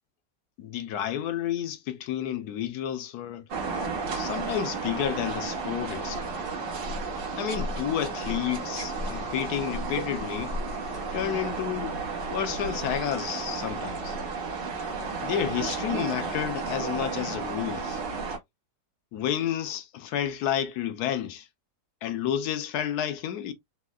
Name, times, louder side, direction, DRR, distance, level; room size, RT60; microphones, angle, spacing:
voice 1, 0.6-3.4 4.1-6.3 7.4-10.5 11.1-12.0 12.3-14.2 15.2-18.0 19.1-21.5 22.0-23.5, left 10 dB, 75° left, 1.1 m, -30 dB
sound 1, 3.5-18.4, right 4 dB, 85° right, 1.8 m, -32 dB
4.2 x 2.1 x 2.3 m
omnidirectional pair, 1.8 m